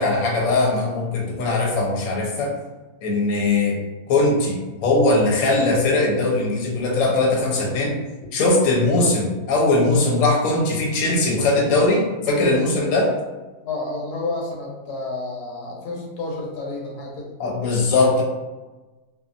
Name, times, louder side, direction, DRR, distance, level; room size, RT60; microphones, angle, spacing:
voice 1, 0.0-2.5 3.0-3.8 4.1-8.0 8.3-13.1 17.4-18.2, left 2 dB, 65° left, -2 dB, 1.0 m, -20 dB
voice 2, 13.6-17.3, left 2 dB, 85° left, -1 dB, 1.2 m, -30 dB
2.8 x 2.4 x 2.4 m, 1.2 s
omnidirectional pair, 1.7 m